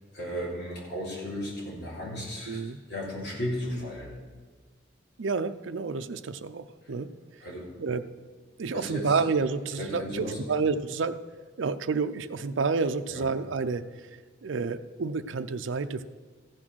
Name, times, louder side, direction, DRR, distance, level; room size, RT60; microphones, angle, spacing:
voice 1, 0.1-4.1 7.4-7.7 8.7-9.2 9.8-10.4 13.1-13.3, equal, 55° left, -5 dB, 3.9 m, -35 dB
voice 2, 2.5-2.8 5.2-7.1 7.8-8.0 8.6-11.2 11.6-14.1 14.4-16.0, right 4 dB, 80° right, 10 dB, 0.5 m, -29 dB
15.0 x 6.2 x 6.2 m, 1.5 s
head